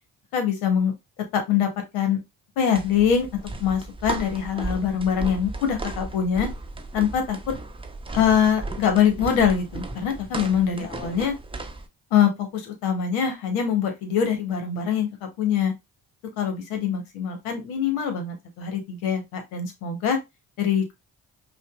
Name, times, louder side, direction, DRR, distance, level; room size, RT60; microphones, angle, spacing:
voice 1, 0.3-0.9 1.3-2.2 2.6-3.3 3.6-6.5 6.9-7.5 8.1-11.3 12.1-15.7 16.4-20.2 20.6-20.9, left 8 dB, 80° left, 5 dB, 1.0 m, -23 dB
sound 1, 2.7-11.9, right 2 dB, 10° right, 0.7 m, -35 dB
5.1 x 2.2 x 2.2 m, 0.21 s
hypercardioid pair, 40°, 48 cm